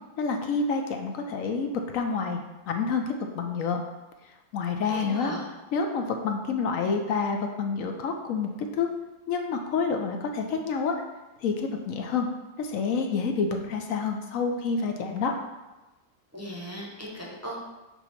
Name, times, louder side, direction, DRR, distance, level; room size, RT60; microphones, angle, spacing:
voice 1, 0.2-2.4 2.7-3.8 4.5-5.3 5.7-8.9 9.3-10.9 11.4-12.3 12.6-15.3, left 5 dB, 65° left, 4 dB, 1.0 m, -28 dB
voice 2, 4.9-5.4 16.3-17.6, equal, 10° right, -3 dB, 0.8 m, -37 dB
6.8 x 3.0 x 5.7 m, 1.1 s
omnidirectional pair, 1.7 m